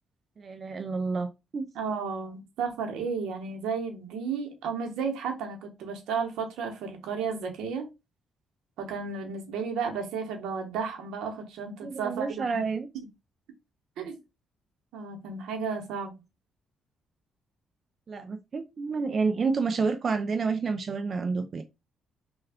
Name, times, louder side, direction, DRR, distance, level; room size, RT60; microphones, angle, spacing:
voice 1, 0.4-1.7 11.8-12.9 18.1-21.6, right 4 dB, 45° right, 0.4 m, -29 dB
voice 2, 1.7-7.9 8.8-12.6 12.9-13.1 14.0-14.2 14.9-16.1, right 5 dB, 85° right, 0.9 m, -33 dB
3.3 x 2.2 x 3.5 m
cardioid pair, 90°, 0 cm